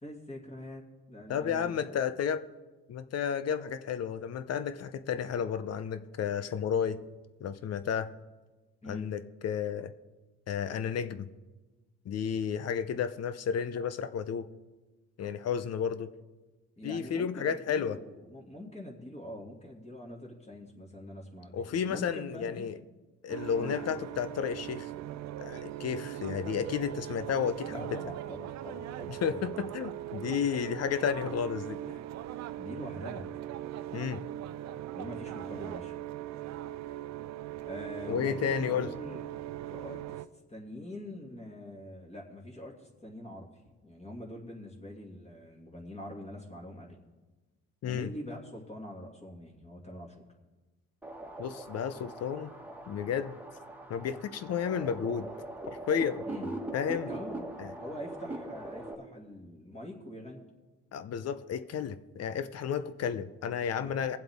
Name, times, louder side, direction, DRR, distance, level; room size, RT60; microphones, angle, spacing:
voice 1, 0.0-1.7 8.8-9.1 16.8-22.7 23.6-23.9 27.6-29.6 32.6-33.3 34.9-35.9 37.6-39.2 39.7-47.0 47.8-50.2 56.3-56.5 57.1-60.4 63.8-64.0, left 1 dB, 20° left, -1 dB, 2.3 m, -44 dB
voice 2, 1.3-2.4 2.9-7.0 7.4-8.1 8.9-9.9 10.5-11.3 12.1-14.5 15.2-16.1 16.8-18.0 21.5-22.8 23.2-24.9 25.4-27.8 29.1-31.8 33.9-34.2 38.1-38.9 47.8-48.1 51.4-52.5 52.9-53.4 53.9-55.3 55.7-56.2 56.7-57.1 57.6-57.7 60.9-64.2, left 7 dB, 55° left, 12 dB, 0.7 m, -32 dB
sound 1, 23.3-40.3, right 13 dB, 60° right, 0.6 m, -40 dB
sound 2, 51.0-58.9, right 1 dB, 5° right, 1.6 m, -41 dB
22.5 x 7.7 x 3.6 m, 1.2 s
supercardioid pair, 75°, 30 cm